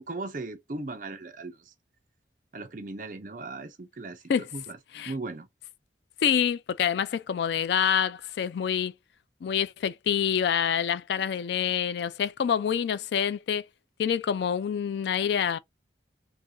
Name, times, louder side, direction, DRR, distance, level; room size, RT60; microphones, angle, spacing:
voice 1, 0.0-1.7 2.5-4.2 4.5-4.8 5.0-5.5 11.2-11.3, right 2 dB, 45° right, 0.6 m, -37 dB
voice 2, 6.2-8.9 9.4-13.6 14.0-15.6, left 8 dB, 70° left, 0.3 m, -26 dB
2.7 x 2.5 x 3.7 m
head